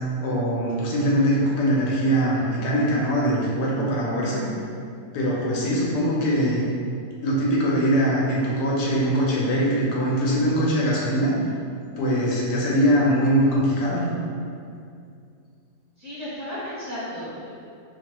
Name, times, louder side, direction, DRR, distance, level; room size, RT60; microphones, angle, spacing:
voice 1, 0.2-4.4 5.1-6.6 7.2-11.3 12.0-14.0, equal, 90° left, -4 dB, 1.3 m, -22 dB
voice 2, 16.0-17.7, equal, 15° right, -12 dB, 0.6 m, -34 dB
3.0 x 2.2 x 2.9 m, 2.4 s
omnidirectional pair, 1.7 m